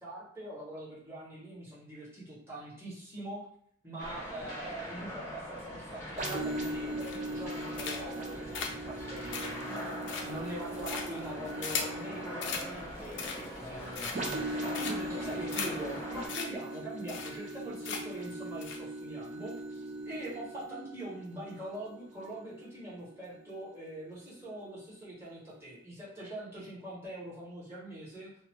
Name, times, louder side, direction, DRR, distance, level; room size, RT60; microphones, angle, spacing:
voice 1, 0.0-3.4 3.8-9.9 10.2-28.3, right 1 dB, 15° right, -9 dB, 1.4 m, -43 dB
sound 1, 4.0-16.3, equal, 15° left, 0.9 m, -42 dB
sound 2, 6.2-23.7 24.2-24.4, right 1 dB, 40° right, 0.6 m, -40 dB
sound 3, 7.0-7.4 7.8-8.2 8.5-12.0 12.4-12.7 13.0-13.6 13.9-14.4 14.7-15.2 15.5-15.7 16.0-16.1 16.3-16.5 16.7-16.8 17.1-17.6 17.8-18.2 18.6-18.8, left 5 dB, 70° left, 0.5 m, -37 dB
2.7 x 2.2 x 3.1 m, 0.63 s
head